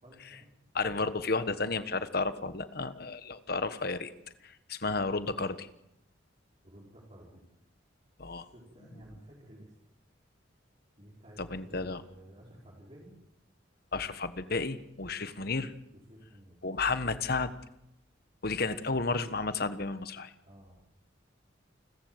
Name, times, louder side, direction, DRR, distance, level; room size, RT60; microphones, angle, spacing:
voice 1, 0.0-0.5 6.6-7.4 8.2-9.7 11.0-13.1 15.9-16.6 20.4-20.8, right 1 dB, 35° right, -5 dB, 5.4 m, -53 dB
voice 2, 0.7-4.1 4.4-5.7 8.2-8.5 11.4-12.0 13.9-15.7 16.6-17.5 18.4-20.3, left 3 dB, 50° left, 12 dB, 1.3 m, -32 dB
29.0 x 14.0 x 8.0 m, 0.83 s
head